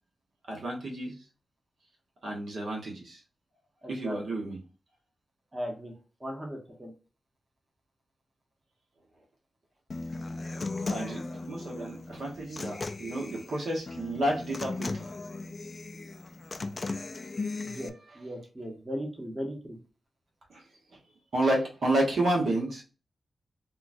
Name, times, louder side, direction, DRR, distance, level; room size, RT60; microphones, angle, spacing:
voice 1, 0.5-1.2 2.2-3.2 3.9-4.6 10.9-15.1 20.5-20.6 21.3-22.8, right 1 dB, 70° right, -1 dB, 1.0 m, -30 dB
voice 2, 3.8-4.2 5.5-5.9 6.2-6.9 17.6-19.8, equal, 20° right, 1 dB, 0.9 m, -37 dB
Human voice / Acoustic guitar, 9.9-17.9, left 3 dB, 40° left, 0.3 m, -37 dB
3.7 x 2.3 x 2.5 m, 0.35 s
cardioid pair, 85°, 0 cm